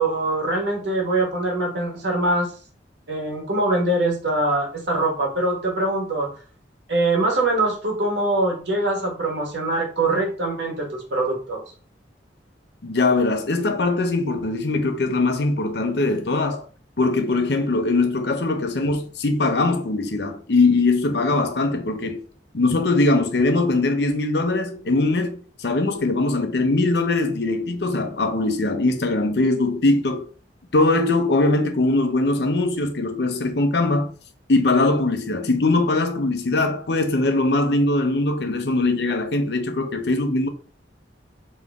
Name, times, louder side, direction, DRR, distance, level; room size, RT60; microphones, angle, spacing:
voice 1, 0.0-2.5 3.1-6.3 6.9-11.6, right 2 dB, 70° right, 1.5 m, -23 dB
voice 2, 12.8-16.6 17.0-22.2 22.5-30.2 30.7-34.1 34.5-40.5, left 2 dB, 65° left, 0.7 m, -21 dB
3.7 x 3.1 x 3.5 m
head